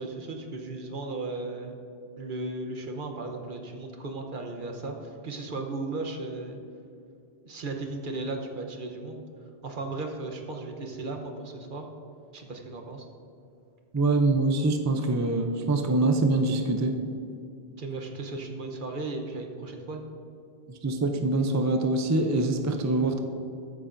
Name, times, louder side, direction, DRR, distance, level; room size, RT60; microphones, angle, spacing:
voice 1, 0.0-1.8 2.2-6.6 7.4-9.2 9.6-11.8 12.3-13.1 17.8-20.0, right 2 dB, 55° right, 3 dB, 1.1 m, -36 dB
voice 2, 13.9-17.0 20.7-23.2, right 2 dB, 25° right, 5 dB, 0.3 m, -24 dB
14.0 x 8.8 x 2.6 m, 2.6 s
omnidirectional pair, 1.1 m